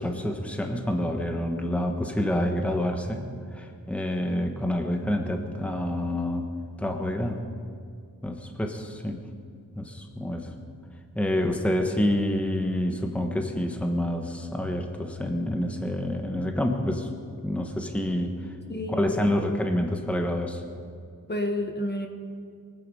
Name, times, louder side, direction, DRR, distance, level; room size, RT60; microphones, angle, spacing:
voice 1, 0.0-6.5 6.8-7.4 8.2-9.2 9.7-10.5 11.1-17.1 17.4-18.4 18.9-20.6, left 1 dB, 5° left, 3 dB, 1.2 m, -27 dB
voice 2, 18.7-19.3 21.3-22.1, left 1 dB, 30° left, 4 dB, 1.2 m, -30 dB
23.0 x 9.4 x 5.5 m, 2.3 s
wide cardioid pair, 120°, 34 cm